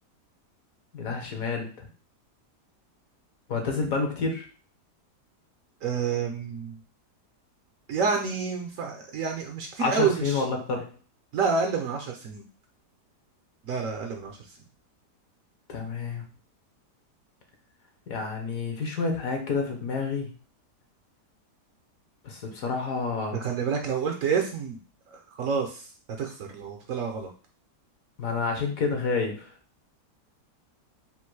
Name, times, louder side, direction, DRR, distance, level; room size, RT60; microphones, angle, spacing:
voice 1, 0.9-1.9 3.5-4.4 9.8-10.8 15.7-16.2 18.1-20.3 22.2-23.5 28.2-29.5, left 4 dB, 60° left, 3 dB, 1.2 m, -29 dB
voice 2, 5.8-6.8 7.9-10.4 11.3-12.4 13.6-14.4 23.3-24.8 25.1-25.9 26.2-27.3, right 5 dB, 65° right, 3 dB, 0.9 m, -28 dB
3.8 x 2.5 x 4.5 m, 0.39 s
omnidirectional pair, 1.8 m